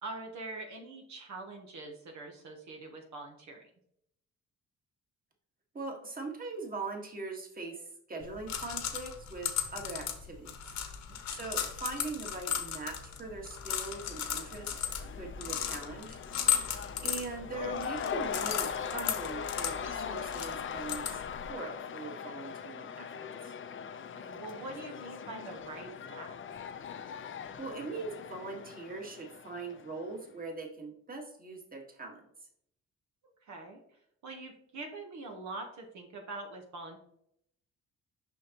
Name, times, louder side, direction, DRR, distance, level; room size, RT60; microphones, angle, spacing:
voice 1, 0.0-3.6 11.1-11.4 16.5-16.8 24.1-26.4 33.4-33.8 34.2-37.0, right 2 dB, 70° right, 2 dB, 1.3 m, -44 dB
voice 2, 5.7-7.8 8.1-10.7 11.3-16.2 17.0-23.1 23.4-23.5 27.6-32.2, right 3 dB, 30° right, 1 dB, 1.8 m, -41 dB
sound 1, 8.2-21.5, left 9 dB, 65° left, 1.1 m, -36 dB
Cheering / Crowd, 13.3-30.2, left 7 dB, 40° left, 0.6 m, -41 dB
6.3 x 5.5 x 3.0 m, 0.72 s
cardioid pair, 90°, 30 cm